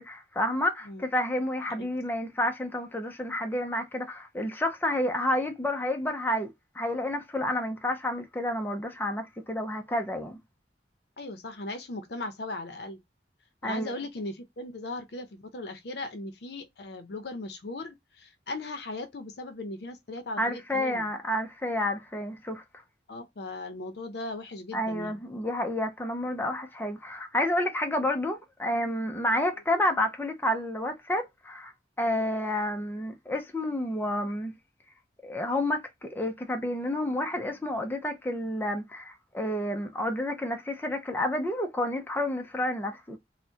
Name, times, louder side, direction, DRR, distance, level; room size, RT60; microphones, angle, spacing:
voice 1, 0.0-10.4 13.6-13.9 20.4-22.6 24.7-31.7 32.0-34.5 35.2-43.2, left 1 dB, 10° left, 0.5 m, -30 dB
voice 2, 11.2-13.0 13.6-21.1 23.1-25.2, left 2 dB, 60° left, 0.6 m, -38 dB
4.3 x 2.1 x 2.8 m
head